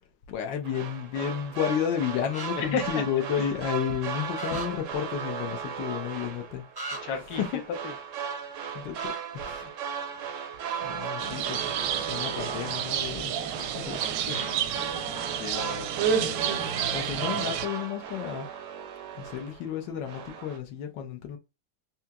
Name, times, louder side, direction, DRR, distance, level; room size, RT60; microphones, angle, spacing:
voice 1, 0.3-6.6 7.4-7.5 8.7-9.0 9.3-9.7 10.1-10.3 10.8-11.7 12.1-14.0 16.9-18.5 19.2-21.4, left 9 dB, 80° left, 1.4 m, -32 dB
sound 1, 0.6-19.7 20.0-20.6, right 7 dB, 70° right, 0.7 m, -37 dB
sound 2, 2.3-2.5 4.3-4.7 6.7-7.0 9.0-9.2, right 2 dB, 30° right, 0.4 m, -37 dB
voice 2, 2.6-3.0 7.0-7.4 7.8-7.9 14.3-14.7 15.4-15.9 16.2-16.7, left 6 dB, 65° left, 1.2 m, -33 dB
sound 3, 11.2-17.7, right 8 dB, 85° right, 1.3 m, -30 dB
4.7 x 2.8 x 2.2 m
omnidirectional pair, 2.0 m